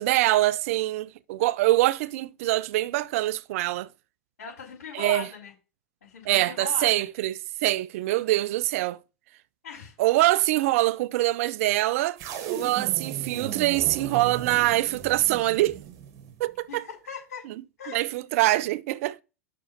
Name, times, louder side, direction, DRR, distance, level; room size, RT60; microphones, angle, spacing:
voice 1, 0.0-3.9 4.9-5.3 6.3-9.0 10.0-12.2 12.5-15.8 16.4-16.8 17.9-19.2, right 17 dB, 60° right, 0.4 m, -24 dB
voice 2, 4.4-5.5 6.0-7.1 9.6-10.0 16.7-17.4 17.8-18.1, left 6 dB, 85° left, 4.6 m, -39 dB
sound 1, 12.2-16.5, right 8 dB, 45° right, 2.0 m, -37 dB
6.1 x 4.9 x 5.9 m
hypercardioid pair, 105°, 8 cm